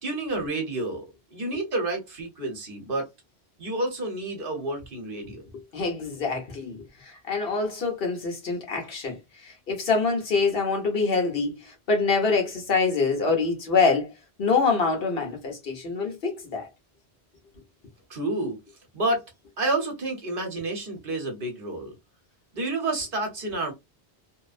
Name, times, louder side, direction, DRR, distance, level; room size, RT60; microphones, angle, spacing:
voice 1, 0.0-1.1 1.3-3.1 3.6-5.4 18.1-18.6 18.9-19.3 19.6-21.9 22.5-23.7, right 2 dB, 60° right, 1.0 m, -29 dB
voice 2, 5.5-14.1 14.4-16.7, left 4 dB, 60° left, 1.2 m, -25 dB
2.9 x 2.0 x 2.4 m
omnidirectional pair, 1.1 m